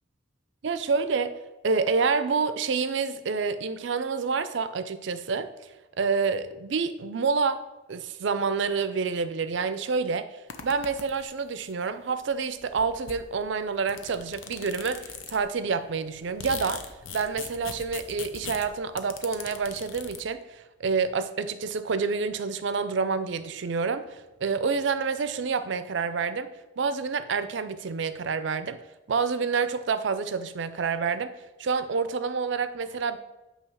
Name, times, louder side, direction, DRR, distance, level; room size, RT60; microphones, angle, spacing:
voice 1, 0.6-1.4 1.6-5.5 6.0-7.6 7.9-10.3 10.6-16.8 17.1-28.8 29.1-33.2, right 5 dB, 60° right, 12 dB, 0.5 m, -28 dB
sound 1, 10.5-11.5 12.3-12.4 12.6-15.6 16.0-20.2, left 6 dB, 75° left, 0.6 m, -41 dB
8.6 x 2.9 x 6.2 m, 1.1 s
head